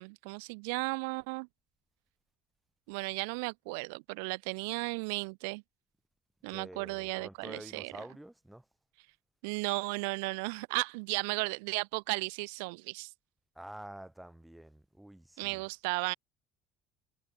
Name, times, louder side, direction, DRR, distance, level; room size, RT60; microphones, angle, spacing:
voice 1, 0.0-1.5 2.9-5.6 6.4-7.9 9.4-13.1 15.4-16.1, right 32 dB, 85° right, 0.5 m, -35 dB
voice 2, 6.5-8.7 13.5-15.6, right 1 dB, 5° right, 3.9 m, -48 dB
supercardioid pair, 95°, 0 cm